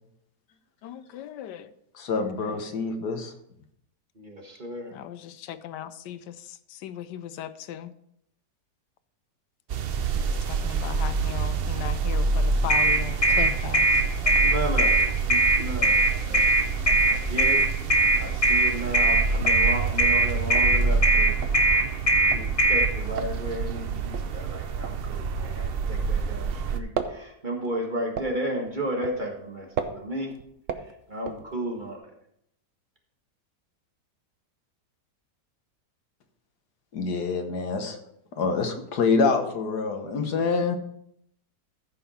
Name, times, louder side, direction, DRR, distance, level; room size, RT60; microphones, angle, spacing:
voice 1, 0.8-1.7 4.9-6.3 6.8-7.9 10.1-13.8, left 11 dB, 85° left, 13 dB, 1.2 m, -37 dB
voice 2, 1.9-3.3 36.9-38.0 38.3-40.8, left 4 dB, 70° left, 6 dB, 1.6 m, -26 dB
voice 3, 4.2-4.9 14.4-16.7 17.0-17.6 18.2-21.4 22.3-29.7 29.9-30.3 31.1-32.1, right 1 dB, 30° right, 0 dB, 1.6 m, -33 dB
sound 1, 9.7-26.8, right 5 dB, 80° right, 0.5 m, -28 dB
sound 2, 12.7-22.9, right 2 dB, 25° left, 1.1 m, -20 dB
sound 3, 18.3-18.6 18.9-19.0 19.3-26.3 26.6-32.0, right 6 dB, 60° right, 1.0 m, -37 dB
14.5 x 5.7 x 4.2 m, 0.73 s
omnidirectional pair, 1.8 m